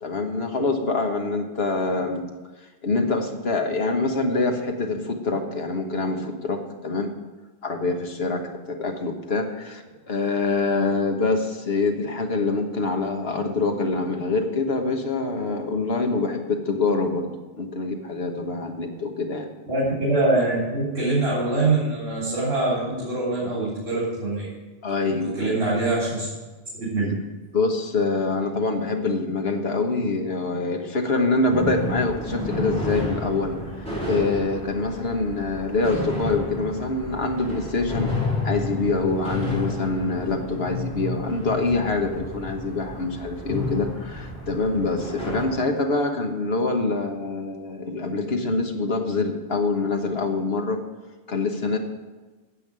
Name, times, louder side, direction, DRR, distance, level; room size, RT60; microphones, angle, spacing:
voice 1, 0.0-2.3 2.8-7.1 7.6-17.3 17.6-19.5 24.8-25.6 27.0-27.2 27.5-33.6 34.1-38.1 38.4-50.8 51.3-51.8, left 3 dB, 70° left, 4 dB, 1.6 m, -25 dB
voice 2, 19.7-24.5 24.9-26.3 26.8-27.1, right 2 dB, 70° right, -8 dB, 3.8 m, -24 dB
sound 1, 31.5-45.5, left 2 dB, 5° left, 4.5 m, -31 dB
10.0 x 7.2 x 8.7 m, 1.3 s
omnidirectional pair, 1.1 m